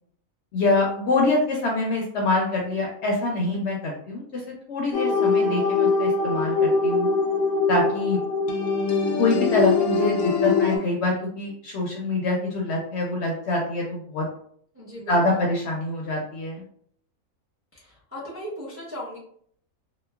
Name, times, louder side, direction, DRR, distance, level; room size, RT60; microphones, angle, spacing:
voice 1, 0.5-4.4 4.7-7.1 7.7-8.2 9.2-14.3 15.1-16.6, left 2 dB, 65° left, -1 dB, 0.7 m, -25 dB
sound 1, 4.9-10.8, left 4 dB, 85° left, 1.0 m, -22 dB
voice 2, 14.7-15.5 17.7-19.2, equal, 15° right, -6 dB, 0.5 m, -37 dB
2.9 x 2.0 x 2.2 m, 0.63 s
omnidirectional pair, 1.5 m